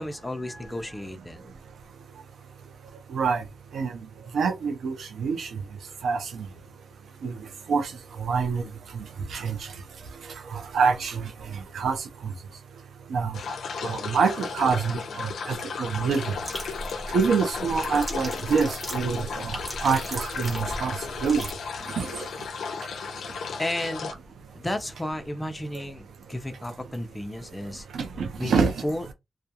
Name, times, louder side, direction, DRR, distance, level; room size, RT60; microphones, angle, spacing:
voice 1, 0.0-1.5 23.6-24.1 24.5-27.9 28.4-29.1, left 1 dB, 15° left, 0.5 m, -33 dB
voice 2, 3.1-3.4 3.7-3.9 4.3-5.5 6.0-6.4 7.2-7.3 7.7-7.9 8.2-8.6 8.9-9.0 9.3-9.6 10.5-11.3 11.7-12.0 13.1-13.3 13.8-16.2 17.1-20.9 21.2-21.4 22.0-22.1 27.9-28.7, right 5 dB, 90° right, 0.6 m, -26 dB
sound 1, 13.3-24.1, left 5 dB, 85° left, 0.4 m, -34 dB
sound 2, 16.3-21.5, equal, 15° right, 1.1 m, -38 dB
2.4 x 2.2 x 2.7 m
wide cardioid pair, 115°, 0 cm